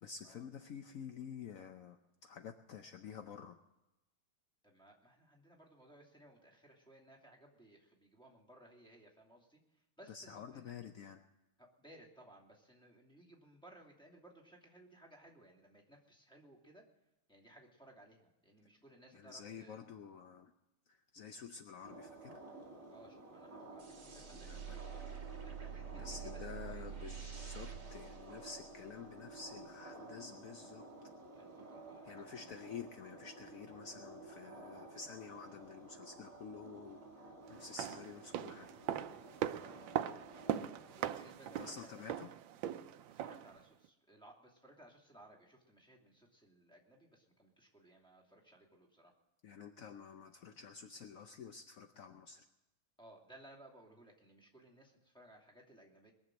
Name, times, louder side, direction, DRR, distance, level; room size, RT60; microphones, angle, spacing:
voice 1, 0.0-3.6 10.1-11.2 19.1-20.5 20.9-22.4 24.3-24.8 26.0-30.9 32.0-38.7 39.5-39.6 41.6-42.3 49.4-52.4, left 6 dB, 70° left, 7 dB, 0.8 m, -50 dB
voice 2, 4.6-10.7 11.6-16.8 17.3-19.8 22.9-25.1 25.4-26.8 31.3-32.6 40.3-40.5 40.9-42.1 43.1-49.1 53.0-56.1, right 1 dB, ahead, -1 dB, 2.6 m, -60 dB
sound 1, 21.8-41.1, right 2 dB, 15° right, 3.7 m, -53 dB
sound 2, 23.8-29.1, right 8 dB, 40° right, 1.9 m, -47 dB
sound 3, 37.6-43.6 43.8-43.9, right 11 dB, 75° right, 1.3 m, -40 dB
21.5 x 7.2 x 7.7 m, 0.96 s
omnidirectional pair, 2.3 m